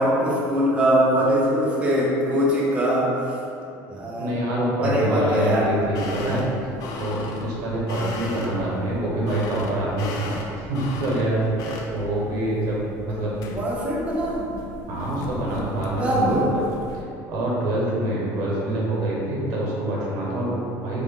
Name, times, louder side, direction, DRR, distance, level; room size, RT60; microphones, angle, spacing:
voice 1, 0.0-3.1 3.9-4.3 4.8-5.7 13.5-14.5 16.0-16.5, equal, 15° right, -5 dB, 0.6 m, -22 dB
voice 2, 4.2-6.4 7.0-10.3 10.6-13.3 14.9-16.6 16.9-21.0, right 1 dB, 60° right, -5 dB, 1.0 m, -26 dB
sound 1, 5.6-17.0, left 3 dB, 55° left, 0.3 m, -38 dB
3.5 x 2.1 x 3.6 m, 2.8 s
cardioid pair, 145°, 7 cm